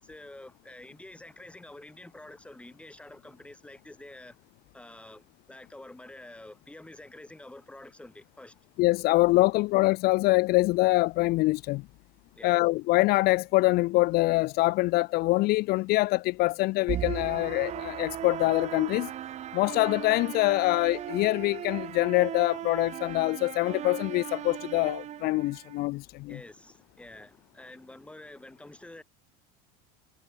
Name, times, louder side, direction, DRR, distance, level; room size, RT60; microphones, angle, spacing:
voice 1, 0.0-4.4 4.7-8.6 12.3-12.6 26.3-29.0, left 1 dB, 5° left, 4.0 m, -48 dB
voice 2, 8.8-11.8 12.4-19.1 19.5-26.4, left 21 dB, 55° left, 0.5 m, -24 dB
sound 1, 16.9-25.9, right 11 dB, 35° right, 0.8 m, -37 dB
supercardioid pair, 115°, 20 cm